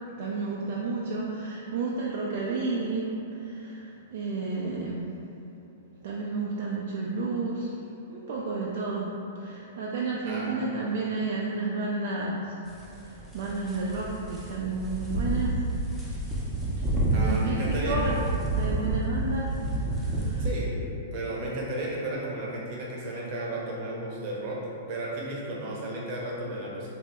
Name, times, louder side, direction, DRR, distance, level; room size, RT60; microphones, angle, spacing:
voice 1, 0.2-5.1 6.0-7.7 8.1-12.6 13.0-15.7 16.8-18.2 18.5-20.5, right 3 dB, 65° right, -4 dB, 0.3 m, -31 dB
voice 2, 10.2-10.7 17.1-17.9 20.4-24.6 24.9-26.9, right 1 dB, 45° right, -4 dB, 0.7 m, -34 dB
sound 1, 12.7-20.5, right 2 dB, 5° right, 0.5 m, -29 dB
2.9 x 2.0 x 3.4 m, 2.8 s
hypercardioid pair, 140°, 0 cm